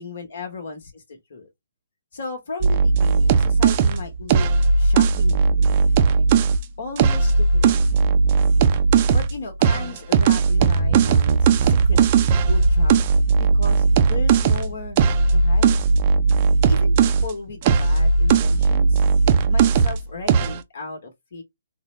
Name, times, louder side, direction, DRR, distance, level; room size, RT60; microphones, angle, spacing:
voice 1, 0.0-1.5 2.1-4.5 4.8-6.3 6.8-7.9 9.1-12.9 13.5-15.0 15.3-15.8 16.7-19.1 19.4-21.4, left 4 dB, 65° left, 1.0 m, -36 dB
sound 1, 2.6-6.6 7.0-9.3 9.6-17.3 17.6-20.0 20.3-20.6, right 5 dB, 35° right, 0.5 m, -17 dB
3.7 x 2.1 x 3.1 m
hypercardioid pair, 145°, 0 cm